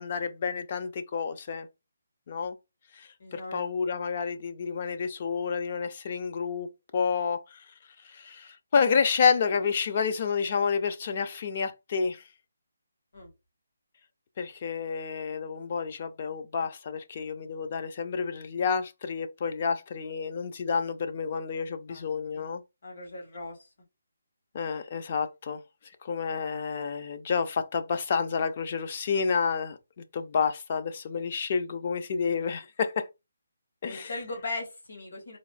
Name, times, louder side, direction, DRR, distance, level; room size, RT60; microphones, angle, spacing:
voice 1, 0.0-1.7 2.3-2.6 2.9-6.7 6.9-7.6 8.0-12.2 14.4-22.6 24.5-25.6 26.0-33.1 33.8-34.1, left 6 dB, 30° left, 0.4 m, -29 dB
voice 2, 3.2-3.7 13.1-13.3 21.9-22.1 22.3-22.4 22.8-23.7 33.8-35.4, left 2 dB, 60° left, 1.9 m, -38 dB
4.1 x 2.7 x 2.4 m
hypercardioid pair, 175°, 0 cm